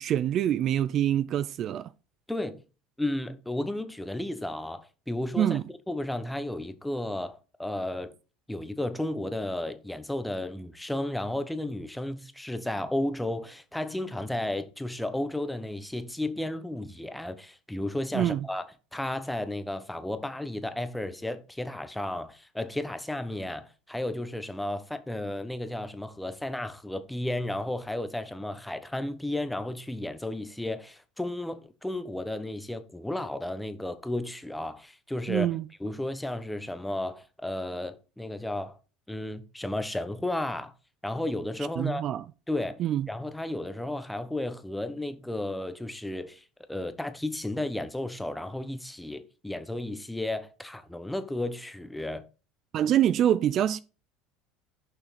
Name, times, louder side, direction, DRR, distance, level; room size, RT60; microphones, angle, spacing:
voice 1, 0.0-1.9 5.4-5.6 18.1-18.5 35.3-35.7 41.8-42.2 42.8-43.1 52.7-53.8, right 11 dB, 45° right, 0.4 m, -25 dB
voice 2, 2.3-2.6 3.0-5.6 5.9-8.1 8.5-18.6 18.9-35.5 35.8-38.8 39.1-40.7 41.0-42.1 42.5-42.8 43.1-52.2, left 1 dB, 5° left, 1.0 m, -33 dB
6.9 x 5.6 x 4.2 m
supercardioid pair, 110°, 0 cm